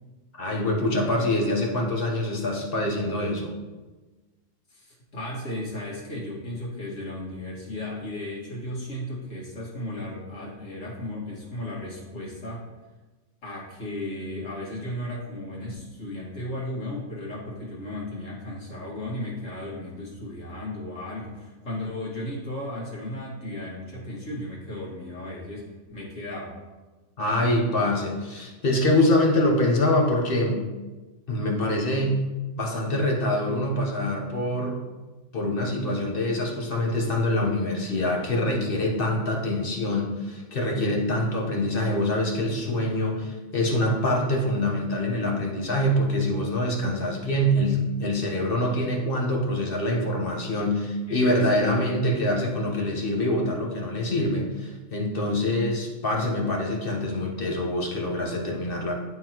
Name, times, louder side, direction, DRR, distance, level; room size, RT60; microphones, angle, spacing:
voice 1, 0.4-3.5 27.2-30.6 31.3-32.2 32.6-34.8 35.3-58.9, left 1 dB, 45° left, 0 dB, 1.2 m, -25 dB
voice 2, 4.7-12.6 13.4-26.6 51.1-51.7, left 1 dB, 70° left, -5 dB, 2.4 m, -35 dB
11.0 x 3.8 x 3.0 m, 1.2 s
omnidirectional pair, 1.4 m